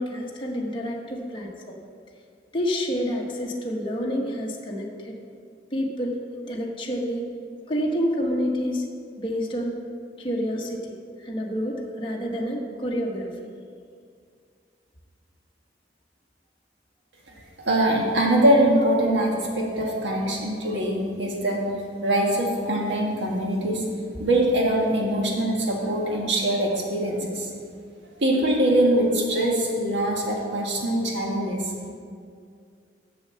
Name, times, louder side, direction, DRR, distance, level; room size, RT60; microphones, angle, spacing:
voice 1, 0.0-1.8 2.5-5.2 5.7-6.2 6.5-7.2 7.7-8.9 9.2-9.8 10.2-13.3, equal, 30° left, -2 dB, 1.1 m, -28 dB
voice 2, 17.6-21.7 22.0-23.8 24.2-27.5 28.2-31.7, right 1 dB, 80° right, -1 dB, 1.6 m, -23 dB
6.9 x 6.7 x 7.6 m, 2.2 s
head